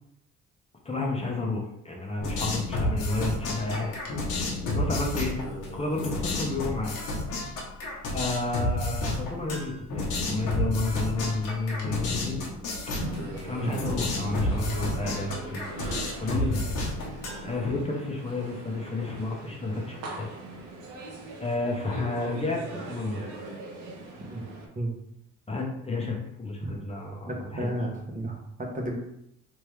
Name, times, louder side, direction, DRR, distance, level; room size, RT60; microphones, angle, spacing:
voice 1, 0.8-3.9 4.7-5.4 5.7-7.0 8.1-12.4 13.4-15.6 16.1-16.6 17.4-20.3 20.5-20.6 21.4-23.2 25.5-27.7, left 2 dB, 20° left, -1 dB, 0.8 m, -31 dB
sound 1, 2.2-17.7, left 1 dB, 90° left, 1.2 m, -31 dB
sound 2, 12.9-24.7, right 2 dB, 85° right, 1.1 m, -41 dB
voice 2, 27.3-29.0, right 1 dB, 25° right, 0 dB, 1.0 m, -32 dB
3.5 x 3.2 x 3.2 m, 0.76 s
cardioid pair, 90°, 30 cm